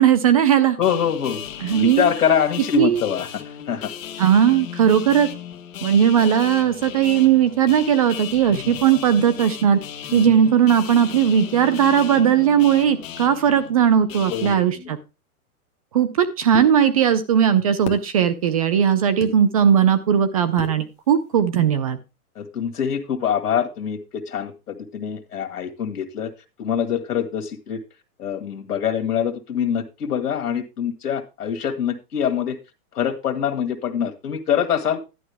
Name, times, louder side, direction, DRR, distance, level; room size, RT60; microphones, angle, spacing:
voice 1, 0.0-0.8 1.6-2.1 2.8-3.0 4.2-5.3 5.8-9.8 10.1-15.0 15.9-22.0, right 8 dB, 25° right, 13 dB, 0.4 m, -18 dB
voice 2, 0.8-3.3 3.7-3.9 8.5-8.7 10.1-10.3 14.3-14.9 22.3-26.3 26.6-27.8 28.2-32.6 32.9-35.0, left 8 dB, 90° left, 5 dB, 1.5 m, -24 dB
sound 1, 0.8-14.5, left 10 dB, 60° left, 1.4 m, -36 dB
sound 2, 16.5-16.7 17.9-18.1 19.2-19.3 20.6-20.8, left 8 dB, 15° left, 0.9 m, -32 dB
11.0 x 9.9 x 3.3 m, 0.27 s
hypercardioid pair, 155°, 45 cm